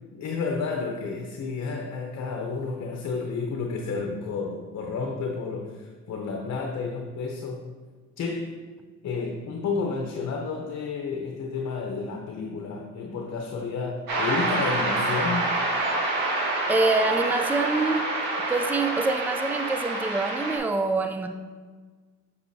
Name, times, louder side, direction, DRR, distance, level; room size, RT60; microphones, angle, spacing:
voice 1, 0.1-7.6 8.2-8.6 9.0-15.5, left 4 dB, 60° left, 2 dB, 0.8 m, -31 dB
sound 1, 14.1-20.6, right 2 dB, 90° right, 1.9 m, -27 dB
voice 2, 16.7-18.1 18.5-21.3, right 3 dB, 5° right, 6 dB, 0.4 m, -25 dB
6.9 x 6.8 x 2.8 m, 1.4 s
cardioid pair, 90°, 30 cm